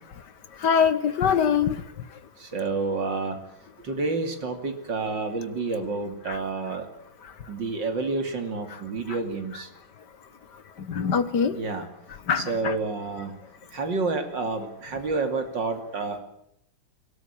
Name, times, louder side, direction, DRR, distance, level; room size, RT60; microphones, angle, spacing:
voice 1, 0.6-1.8 6.3-6.4 10.9-11.6 12.3-12.7, left 7 dB, 60° left, 12 dB, 1.8 m, -23 dB
voice 2, 2.4-3.4 3.8-6.9 7.5-9.7 11.6-11.9 12.3-13.3 13.7-16.2, right 3 dB, 65° right, 6 dB, 3.4 m, -29 dB
23.0 x 18.0 x 8.8 m, 0.75 s
omnidirectional pair, 2.1 m